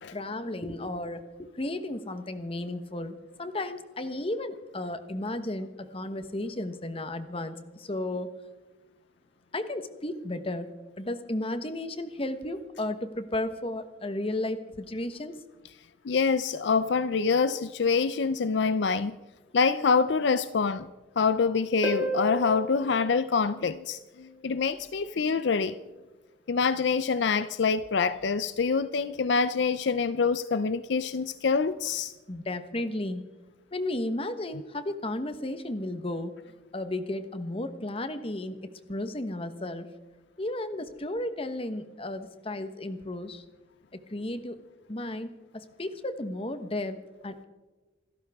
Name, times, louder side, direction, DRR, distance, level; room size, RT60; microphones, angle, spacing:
voice 1, 0.1-8.3 9.5-10.7 11.0-15.4 32.3-33.2 33.7-36.3 36.7-39.9 40.4-43.4 44.1-44.6 44.9-47.0 47.2-47.4, left 1 dB, 30° left, 10 dB, 1.1 m, -34 dB
voice 2, 16.0-19.2 19.5-20.9 21.2-25.8 26.5-32.1, left 5 dB, 65° left, 14 dB, 0.5 m, -26 dB
Harp, 21.8-24.3 27.8-27.9, right 1 dB, 10° right, 1.8 m, -34 dB
27.0 x 13.5 x 3.6 m, 1.2 s
head